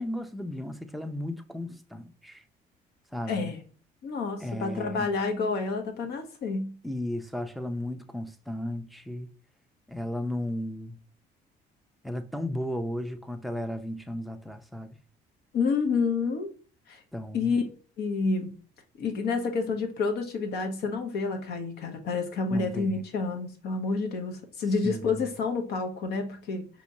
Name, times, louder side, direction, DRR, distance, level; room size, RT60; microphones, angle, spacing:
voice 1, 0.0-2.4 3.1-3.5 4.4-5.1 6.8-9.3 9.9-11.0 12.0-15.0 17.1-17.6 22.5-23.0 24.8-25.3, left 1 dB, ahead, 0.4 m, -35 dB
voice 2, 3.3-3.6 4.0-6.7 15.5-16.5 16.9-17.0 17.3-17.6 18.0-18.6 19.0-26.7, left 4 dB, 70° left, 1.0 m, -29 dB
5.0 x 3.0 x 2.7 m
cardioid pair, 110°, 17 cm